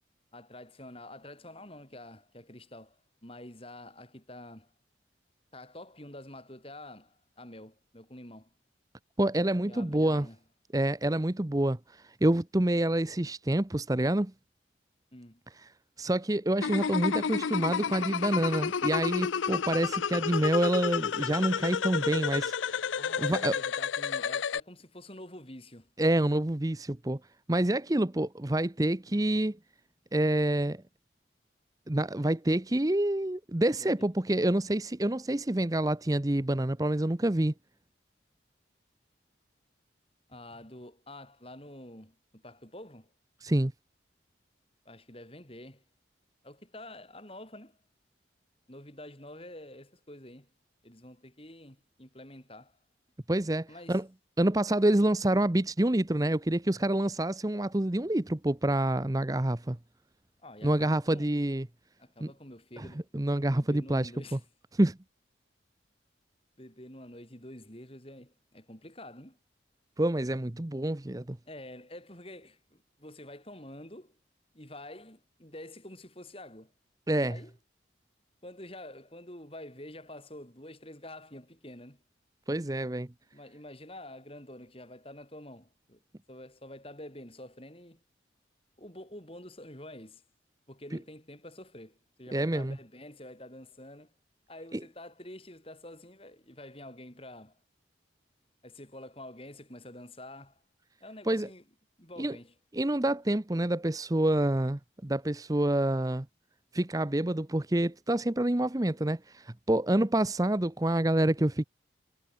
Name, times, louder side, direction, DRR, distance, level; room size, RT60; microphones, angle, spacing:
voice 1, 0.3-4.7 5.5-8.5 9.7-10.4 15.1-15.4 23.0-25.9 33.8-33.9 40.3-43.1 44.8-45.8 46.4-47.8 48.7-50.5 50.8-52.8 53.7-54.0 60.4-61.3 62.0-63.1 63.5-64.4 66.6-69.4 71.4-74.2 74.5-76.7 77.3-77.6 78.4-82.0 83.3-86.0 86.3-88.0 88.8-90.2 90.7-94.1 94.5-97.6 98.6-100.6 101.0-101.6 102.0-102.5 109.9-110.0, left 1 dB, 30° left, 6.2 m, -48 dB
voice 2, 9.2-10.3 10.7-14.3 16.0-22.9 23.2-23.6 26.0-27.2 27.5-29.6 30.1-30.8 31.9-37.5 43.4-43.7 53.3-54.1 54.4-59.8 60.6-61.7 62.2-62.3 62.8-62.9 63.1-64.4 64.7-65.0 70.0-71.4 77.1-77.4 82.5-83.1 92.3-92.8 94.7-94.8 101.3-101.5 102.2-102.4 102.7-106.3 106.7-111.7, right 1 dB, 20° right, 0.7 m, -27 dB
sound 1, 16.6-24.6, left 6 dB, 90° left, 0.5 m, -31 dB
head